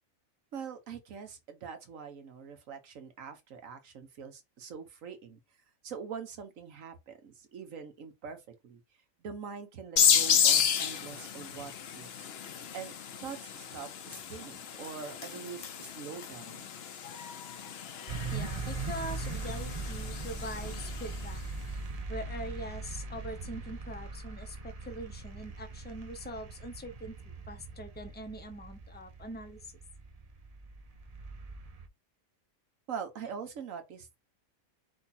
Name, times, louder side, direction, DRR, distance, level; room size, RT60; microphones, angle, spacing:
voice 1, 0.5-5.4 5.8-8.8 9.2-12.3 12.7-12.9 13.2-16.7 32.9-34.2, right 6 dB, 70° right, 1.4 m, -43 dB
sound 1, 10.0-21.3, left 8 dB, 60° left, 0.8 m, -32 dB
sound 2, 18.1-31.9, right 3 dB, 45° right, 0.5 m, -40 dB
voice 2, 18.3-21.4 22.1-29.7, equal, 10° left, 0.5 m, -43 dB
5.0 x 2.4 x 4.2 m
omnidirectional pair, 1.4 m